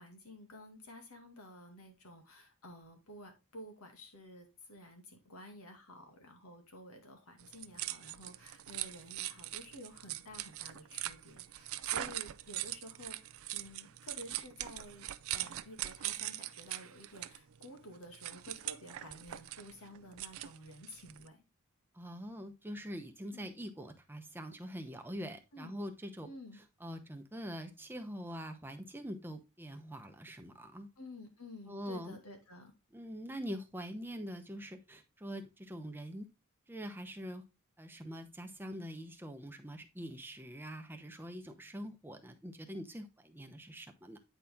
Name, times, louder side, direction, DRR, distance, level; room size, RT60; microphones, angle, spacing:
voice 1, 0.0-21.4 23.3-23.5 25.5-25.7 26.2-26.6 31.0-32.7, left 1 dB, 80° left, 4 dB, 2.2 m, -52 dB
sound 1, 7.4-21.3, right 14 dB, 70° right, 0.4 m, -42 dB
voice 2, 21.9-26.3 26.8-30.9 31.7-32.2 32.9-36.3 36.7-37.4 37.8-44.2, equal, 10° right, 5 dB, 0.9 m, -44 dB
9.1 x 4.4 x 3.6 m, 0.26 s
head